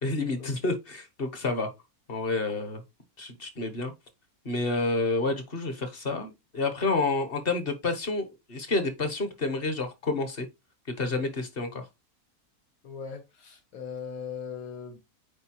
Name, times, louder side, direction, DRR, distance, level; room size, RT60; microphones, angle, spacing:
voice 1, 0.0-1.7 2.1-2.8 3.2-3.9 4.4-10.5 11.0-11.9, left 3 dB, 40° left, 1.2 m, -29 dB
voice 2, 12.8-15.0, left 6 dB, 70° left, 2.0 m, -39 dB
8.5 x 3.9 x 3.0 m
omnidirectional pair, 1.6 m